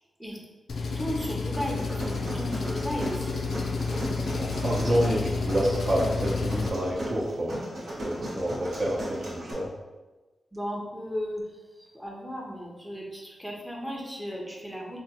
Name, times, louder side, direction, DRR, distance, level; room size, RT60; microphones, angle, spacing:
Engine, 0.7-6.7, left 4 dB, 70° left, 0.3 m, -30 dB
voice 1, 0.9-3.4 10.5-11.4 11.8-15.0, equal, ahead, -2 dB, 0.6 m, -35 dB
sound 1, 1.5-9.5, equal, 75° right, 1.0 m, -36 dB
voice 2, 4.3-7.6 8.0-9.7, equal, 50° right, -3 dB, 0.7 m, -28 dB
3.3 x 2.2 x 2.8 m, 1.2 s
cardioid pair, 85°, 0 cm